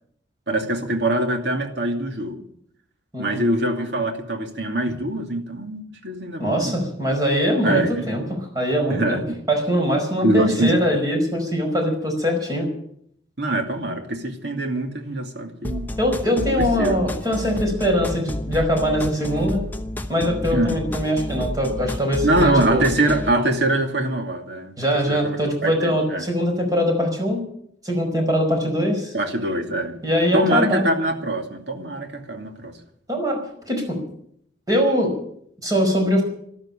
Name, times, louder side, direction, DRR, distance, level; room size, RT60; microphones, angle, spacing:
voice 1, 0.5-2.4 3.2-6.7 7.6-8.1 8.9-9.4 10.2-10.7 13.4-15.9 16.3-17.1 20.5-20.8 22.2-26.3 29.1-30.0 30.3-32.7, right 1 dB, 65° right, 4 dB, 2.6 m, -23 dB
voice 2, 6.4-9.2 9.5-12.7 16.0-19.6 20.1-22.8 24.8-27.4 27.8-29.1 30.0-30.9 33.1-34.0 34.7-35.1 35.6-36.2, equal, 20° right, 2 dB, 5.1 m, -22 dB
sound 1, 15.6-23.3, left 1 dB, 10° left, 0.9 m, -30 dB
13.0 x 12.5 x 8.7 m, 0.68 s
head